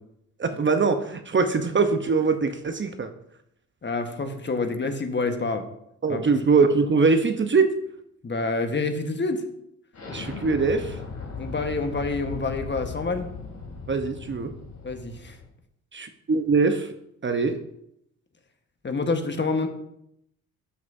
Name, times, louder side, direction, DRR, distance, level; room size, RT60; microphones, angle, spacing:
voice 1, 0.4-3.1 6.0-7.7 10.1-11.0 13.9-14.5 15.9-16.9 17.2-17.6, right 4 dB, 30° right, 8 dB, 0.9 m, -22 dB
voice 2, 3.8-5.6 6.1-6.3 8.2-9.4 11.4-13.3 14.8-15.4 18.8-19.7, left 3 dB, 30° left, 6 dB, 1.3 m, -27 dB
Explosion, 9.9-15.5, left 4 dB, 45° left, 2.8 m, -38 dB
12.5 x 6.3 x 2.7 m, 0.77 s
supercardioid pair, 55°, 37 cm